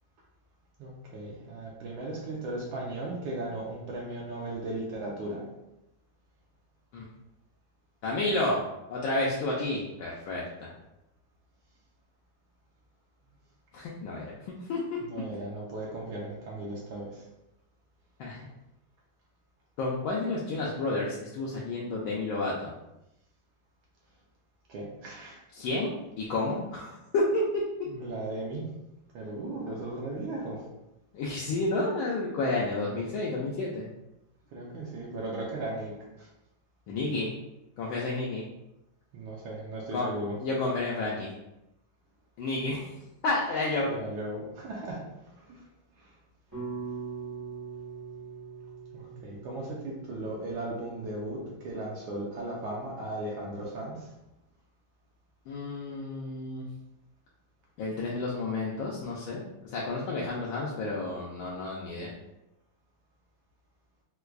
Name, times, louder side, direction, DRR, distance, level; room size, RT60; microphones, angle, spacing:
voice 1, 0.8-5.5 15.0-17.2 24.7-25.4 27.9-28.7 29.1-30.7 34.5-36.3 39.1-40.4 43.8-45.0 45.3-45.7 46.0-46.2 48.9-54.1, right 2 dB, 75° right, -3 dB, 1.3 m, -37 dB
voice 2, 8.0-10.7 13.7-15.0 18.2-18.5 19.8-22.8 25.5-27.4 31.1-33.9 36.9-37.3 37.8-38.5 39.9-40.1 40.4-41.3 42.4-42.9 43.2-43.9 55.5-56.7 57.8-62.1, left 2 dB, 75° left, -5 dB, 1.3 m, -31 dB
sound 1, 46.5-50.8, right 5 dB, 20° right, 0.6 m, -41 dB
4.5 x 2.2 x 2.4 m, 0.91 s
omnidirectional pair, 2.4 m